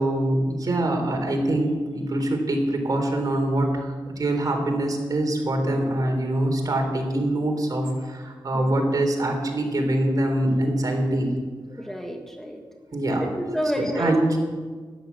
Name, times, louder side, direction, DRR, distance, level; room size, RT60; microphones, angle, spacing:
voice 1, 0.0-11.3 12.9-13.2 14.0-14.4, right 1 dB, 50° right, 2 dB, 3.7 m, -24 dB
voice 2, 11.8-12.6 13.2-14.4, equal, 5° left, 2 dB, 1.6 m, -29 dB
13.0 x 11.5 x 7.2 m, 1.5 s
cardioid pair, 70°, 8 cm